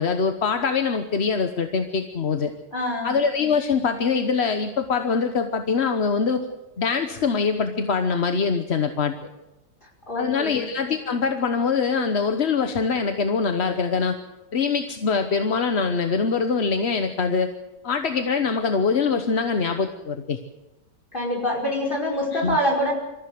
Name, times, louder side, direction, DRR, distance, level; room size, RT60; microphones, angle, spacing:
voice 1, 0.0-2.5 3.0-6.5 6.8-9.1 10.1-14.2 14.5-17.5 17.8-20.4 22.3-22.6, left 5 dB, 45° left, 7 dB, 1.2 m, -23 dB
voice 2, 2.7-3.1 10.1-10.6 21.1-22.9, equal, 30° left, 0 dB, 5.5 m, -25 dB
25.5 x 15.0 x 7.8 m, 1.0 s
omnidirectional pair, 1.9 m